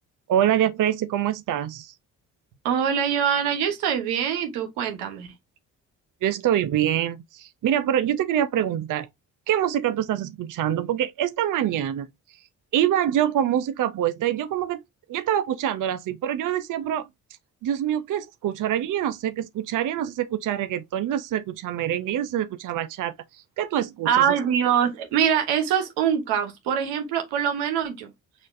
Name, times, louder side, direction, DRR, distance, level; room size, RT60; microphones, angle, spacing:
voice 1, 0.3-1.9 6.2-9.1 9.5-12.1 12.7-14.8 15.1-17.1 17.6-24.3, right 11 dB, 55° right, 0.6 m, -25 dB
voice 2, 2.6-5.3 24.0-28.1, right 8 dB, 90° right, 0.9 m, -23 dB
6.2 x 2.5 x 2.5 m
supercardioid pair, 55°, 38 cm